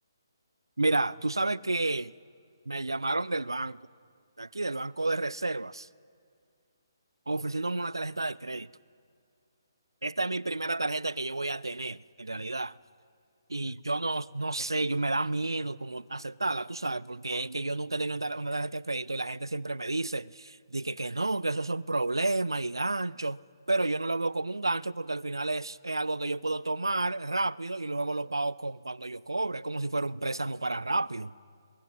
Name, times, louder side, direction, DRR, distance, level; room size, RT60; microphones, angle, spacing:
voice 1, 0.8-2.1 2.7-3.8 4.4-5.9 7.3-8.7 10.0-12.8 13.5-23.4 23.7-31.3, right 2 dB, 85° right, 0.3 m, -31 dB
22.0 x 11.0 x 6.0 m
figure-of-eight pair, 140°, 2 cm